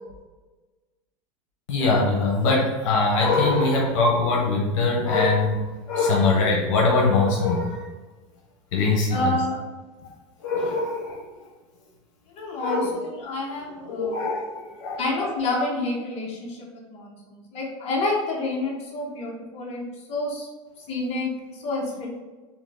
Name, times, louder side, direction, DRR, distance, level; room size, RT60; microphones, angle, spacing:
voice 1, 1.7-5.6 5.9-7.9 8.7-9.4 10.4-11.3 12.6-13.0 13.9-15.0, left 3 dB, 75° left, -1 dB, 1.0 m, -22 dB
voice 2, 9.1-9.6 12.4-14.2 15.0-20.5 20.9-21.3 21.6-22.1, left 2 dB, 40° left, -3 dB, 1.2 m, -28 dB
3.6 x 2.9 x 3.7 m, 1.2 s
supercardioid pair, 130°, 16 cm